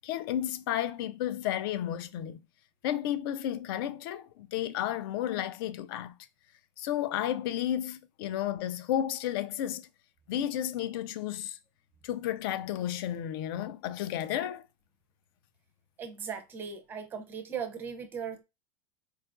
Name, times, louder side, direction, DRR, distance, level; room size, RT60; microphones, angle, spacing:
voice 1, 0.0-2.4 2.8-6.2 6.8-9.9 10.3-11.6 12.0-14.6, left 11 dB, 50° left, 0.4 m, -32 dB
voice 2, 16.0-18.4, right 7 dB, 15° right, 0.5 m, -38 dB
4.5 x 2.3 x 2.3 m
supercardioid pair, 175°, 15 cm